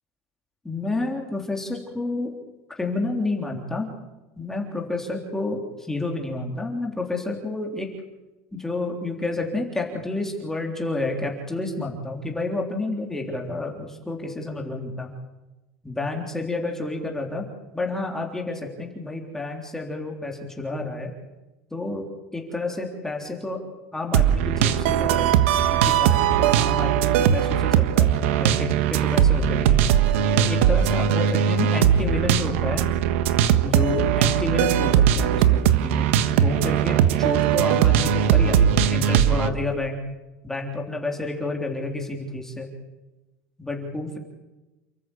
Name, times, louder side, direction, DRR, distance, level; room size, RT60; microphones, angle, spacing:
voice 1, 0.6-2.4 2.8-3.9 4.4-7.9 8.5-15.1 15.8-17.5 17.7-21.1 21.7-22.1 22.3-23.6 23.9-29.8 30.3-32.9 33.6-36.1 36.3-40.0 40.4-42.7 43.6-44.2, left 2 dB, 5° left, 1 dB, 3.5 m, -30 dB
sound 1, 24.1-39.5, right 9 dB, 90° right, 1.5 m, -20 dB
29.0 x 14.0 x 8.5 m, 1.1 s
cardioid pair, 150°, 7 cm